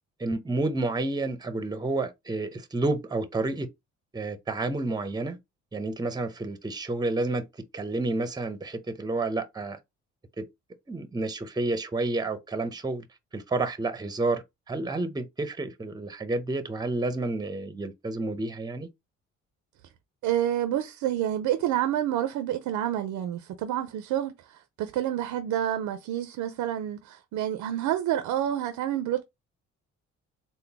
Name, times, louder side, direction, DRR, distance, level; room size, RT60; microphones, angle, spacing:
voice 1, 0.2-3.7 4.1-5.4 5.7-7.5 7.7-9.8 10.4-10.5 10.9-13.1 13.3-18.9, right 2 dB, 15° right, 0.6 m, -30 dB
voice 2, 20.2-29.2, right 11 dB, 90° right, 0.5 m, -28 dB
3.8 x 2.1 x 3.4 m
cardioid pair, 90°, 30 cm